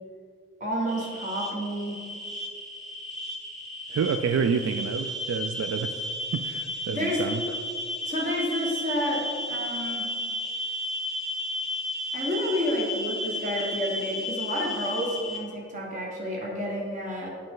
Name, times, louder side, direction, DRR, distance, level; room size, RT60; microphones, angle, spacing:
voice 1, 0.6-1.9 6.9-7.4 8.0-10.1 12.1-17.3, equal, 40° right, -3 dB, 1.4 m, -30 dB
sound 1, 0.9-15.4, left 1 dB, ahead, 0.8 m, -33 dB
voice 2, 3.9-5.9 6.3-7.4, right 6 dB, 85° right, 9 dB, 0.3 m, -28 dB
8.0 x 5.1 x 3.7 m, 2.1 s
head